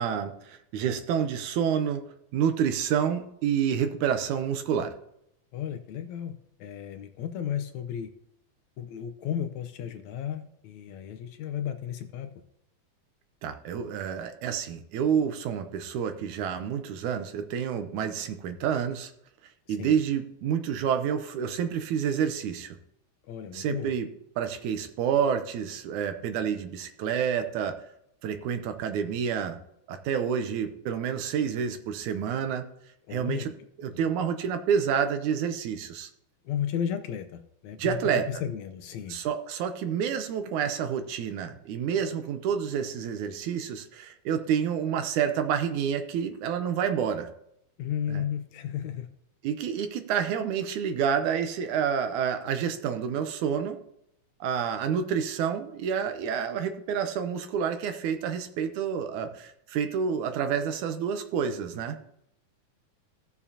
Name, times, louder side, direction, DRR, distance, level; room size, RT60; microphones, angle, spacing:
voice 1, 0.0-2.0 2.3-4.9 13.4-19.1 19.7-22.8 23.5-24.1 24.4-27.8 28.2-29.6 29.9-32.7 33.1-33.5 33.8-36.1 37.8-38.3 39.1-47.3 48.1-48.2 49.4-53.8 54.4-62.0, right 7 dB, 80° right, 8 dB, 2.2 m, -28 dB
voice 2, 5.5-8.1 8.8-12.3 19.7-20.0 23.3-23.9 33.1-33.5 33.9-34.1 36.5-38.0 38.3-39.2 47.8-49.1, left 9 dB, 75° left, 8 dB, 1.9 m, -34 dB
16.5 x 7.0 x 2.8 m, 0.76 s
omnidirectional pair, 3.6 m